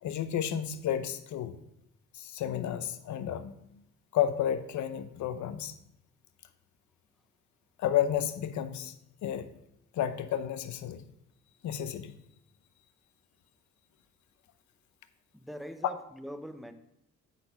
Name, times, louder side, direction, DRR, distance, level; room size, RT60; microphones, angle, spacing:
voice 1, 0.0-1.5 2.1-3.6 4.1-5.7 7.8-8.9 9.2-9.5 9.9-11.0 11.6-12.1, left 10 dB, 70° left, 12 dB, 0.8 m, -31 dB
voice 2, 15.3-16.7, equal, ahead, 7 dB, 0.8 m, -42 dB
8.8 x 4.3 x 5.9 m, 0.80 s
cardioid pair, 90°, 30 cm